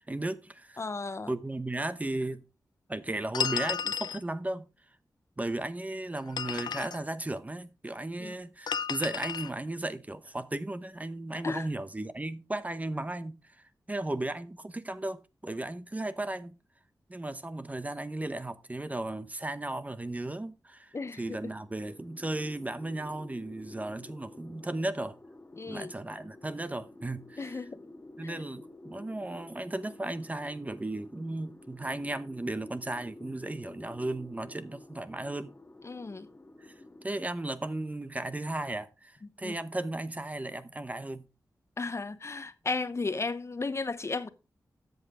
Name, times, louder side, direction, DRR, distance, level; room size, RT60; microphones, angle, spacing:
voice 1, 0.1-0.8 1.3-2.4 2.9-4.6 5.4-13.6 13.9-16.6 17.1-25.2 25.7-27.6 28.2-35.5 36.6-36.7 37.0-41.2, right 2 dB, 20° right, 0.9 m, -35 dB
voice 2, 0.8-1.3 8.2-8.3 11.4-11.7 20.9-21.4 25.6-25.9 27.4-27.8 28.2-28.4 35.8-36.3 39.4-39.6 41.8-44.3, left 3 dB, 40° left, 0.8 m, -34 dB
sound 1, 3.3-4.2 6.2-7.0 8.7-9.5, left 7 dB, 85° left, 0.4 m, -32 dB
sound 2, 21.1-37.1, left 2 dB, 25° left, 1.6 m, -51 dB
13.5 x 8.0 x 3.6 m
wide cardioid pair, 90°, 7 cm